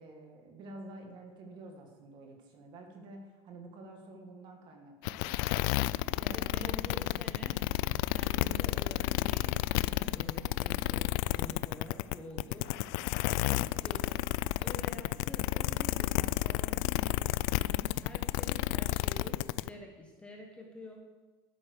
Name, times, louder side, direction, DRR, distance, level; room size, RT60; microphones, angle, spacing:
voice 1, 0.0-5.2 5.5-6.9 8.3-8.6, right 2 dB, 35° right, 3 dB, 2.1 m, -49 dB
sound 1, 5.0-19.7, left 18 dB, 60° left, 0.4 m, -31 dB
voice 2, 6.2-7.6 8.1-12.8 13.3-14.3 14.6-21.0, left 1 dB, 10° left, 1 dB, 1.2 m, -48 dB
11.5 x 9.5 x 6.7 m, 1.3 s
cardioid pair, 175°, 13 cm